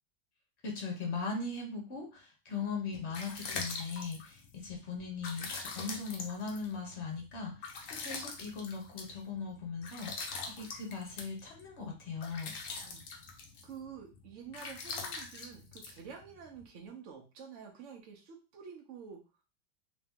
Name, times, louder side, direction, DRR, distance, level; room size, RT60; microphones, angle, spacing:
voice 1, 0.6-7.6 8.0-12.5, left 4 dB, 45° left, 1 dB, 1.0 m, -39 dB
sound 1, 2.7-16.6, left 4 dB, 65° left, 0.7 m, -44 dB
voice 2, 12.8-13.1 13.6-19.4, right 7 dB, 65° right, 0 dB, 0.7 m, -49 dB
3.2 x 2.9 x 3.5 m, 0.31 s
omnidirectional pair, 2.2 m